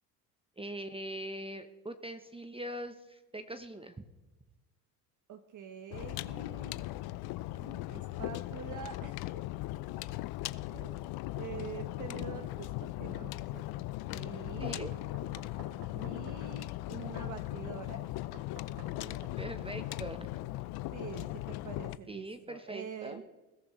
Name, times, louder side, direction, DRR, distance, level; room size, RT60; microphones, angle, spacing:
voice 1, 0.6-4.1 14.6-14.9 19.0-20.5 22.1-23.3, right 1 dB, 10° right, 8 dB, 1.0 m, -42 dB
voice 2, 5.3-6.8 7.5-9.2 10.7-14.9 15.9-18.1 20.9-23.2, right 8 dB, 40° right, 7 dB, 1.1 m, -46 dB
sound 1, 5.9-22.0, left 17 dB, 55° left, 0.6 m, -38 dB
Knock, 14.7-16.4 18.3-20.0, right 4 dB, 60° right, 3.6 m, -53 dB
21.0 x 13.5 x 3.2 m, 1.1 s
hypercardioid pair, 75°, 44 cm